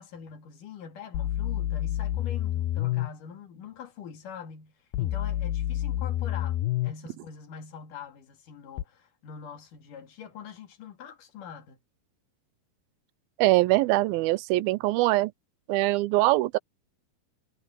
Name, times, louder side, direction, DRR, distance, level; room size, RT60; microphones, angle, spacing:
voice 1, 0.0-11.8, left 7 dB, 65° left, 3.5 m, -44 dB
sound 1, 1.1-3.1 4.9-6.9 8.8-8.9, left 13 dB, 80° left, 2.6 m, -28 dB
voice 2, 13.4-15.3 15.7-16.6, right 19 dB, 85° right, 2.5 m, -23 dB
omnidirectional pair, 4.2 m